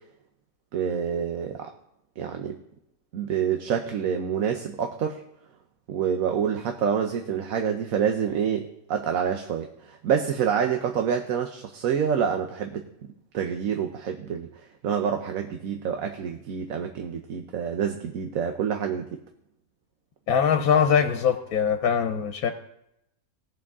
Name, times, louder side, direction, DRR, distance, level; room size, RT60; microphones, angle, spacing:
voice 1, 0.7-1.7 2.2-2.6 3.1-5.2 5.9-12.8 13.3-14.5 14.8-19.2, right 7 dB, 75° right, 4 dB, 1.2 m, -27 dB
voice 2, 20.3-22.5, left 7 dB, 85° left, 6 dB, 1.3 m, -22 dB
19.0 x 6.4 x 3.6 m, 0.80 s
omnidirectional pair, 1.5 m